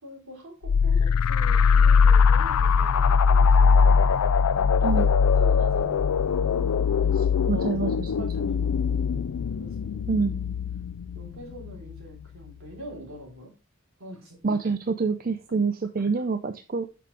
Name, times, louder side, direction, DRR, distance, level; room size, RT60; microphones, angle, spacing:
voice 1, 0.0-4.1 4.5-5.1 5.4-10.5 11.1-13.6 14.0-14.6 16.2-16.3, equal, 70° right, 0 dB, 3.8 m, -43 dB
sound 1, 0.6-12.0, left 6 dB, 90° left, 0.4 m, -21 dB
voice 2, 7.1-8.1 10.1-10.3 14.4-16.9, right 4 dB, 40° right, 9 dB, 0.5 m, -27 dB
8.4 x 5.9 x 3.3 m, 0.32 s
head